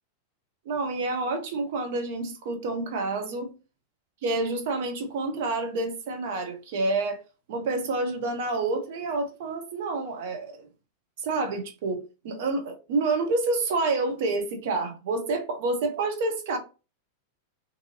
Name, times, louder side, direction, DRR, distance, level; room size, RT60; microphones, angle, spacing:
voice 1, 0.7-3.5 4.2-7.2 7.5-10.7 11.2-16.6, right 3 dB, 55° right, 0.7 m, -28 dB
2.6 x 2.6 x 2.7 m
figure-of-eight pair, 90°, 0 cm